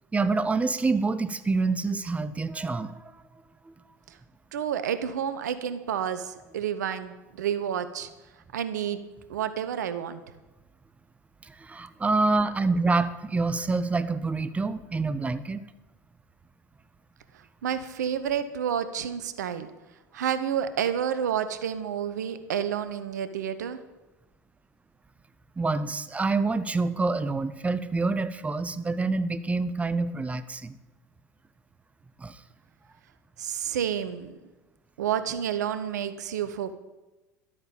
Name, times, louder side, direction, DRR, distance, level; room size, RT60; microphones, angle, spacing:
voice 1, 0.1-3.2 3.6-3.7 11.4-15.6 25.6-30.7 32.2-32.4, right 3 dB, 15° right, 13 dB, 0.8 m, -27 dB
voice 2, 4.5-8.1 8.5-9.0 9.3-10.2 17.6-19.7 20.1-23.8 33.4-34.4 35.0-36.7, right 9 dB, 70° right, 12 dB, 1.0 m, -30 dB
12.5 x 8.5 x 7.0 m, 1.1 s
figure-of-eight pair, 75°, 10 cm